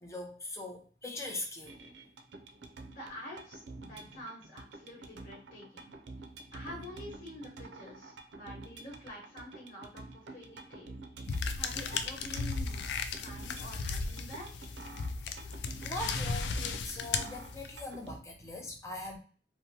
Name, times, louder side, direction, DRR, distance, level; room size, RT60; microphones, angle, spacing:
voice 1, 0.0-1.8 3.8-4.0 15.2-15.5 15.8-19.2, left 2 dB, 15° left, 1 dB, 0.5 m, -41 dB
sound 1, 1.7-18.2, right 2 dB, 85° right, 0.4 m, -49 dB
voice 2, 2.9-5.9 6.5-11.0 11.6-12.9 13.2-14.5, equal, 50° left, -5 dB, 1.3 m, -47 dB
sound 2, 11.3-17.9, left 4 dB, 75° left, 0.3 m, -35 dB
2.8 x 2.1 x 2.7 m, 0.41 s
head